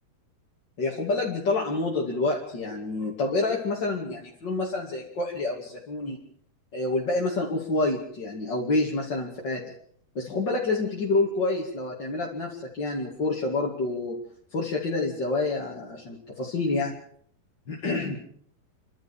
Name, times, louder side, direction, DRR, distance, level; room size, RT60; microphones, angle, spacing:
voice 1, 0.8-6.2 6.7-9.6 10.1-14.2 14.5-16.9 17.7-18.2, left 3 dB, 30° left, -3 dB, 2.8 m, -28 dB
29.5 x 12.5 x 7.3 m, 0.62 s
omnidirectional pair, 4.3 m